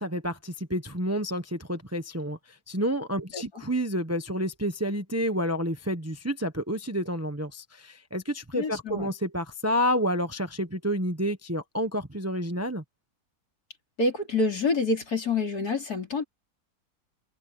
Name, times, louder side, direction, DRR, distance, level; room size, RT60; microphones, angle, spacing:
voice 1, 0.0-12.8, equal, 10° right, 1.0 m, -29 dB
voice 2, 8.5-9.1 14.0-16.2, left 3 dB, 65° left, 4.6 m, -27 dB
omnidirectional pair, 1.7 m